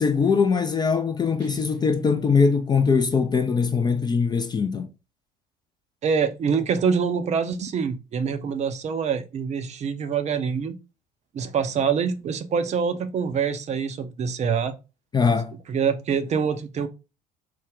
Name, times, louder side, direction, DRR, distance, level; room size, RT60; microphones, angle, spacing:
voice 1, 0.0-4.9 15.1-15.5, left 5 dB, 20° left, 0.4 m, -21 dB
Guitar, 1.4-4.0, right 1 dB, 85° right, 0.8 m, -44 dB
voice 2, 6.0-10.8 11.3-14.7 15.7-16.9, right 6 dB, 35° right, 0.6 m, -25 dB
4.7 x 2.1 x 3.7 m
figure-of-eight pair, 60°, 21 cm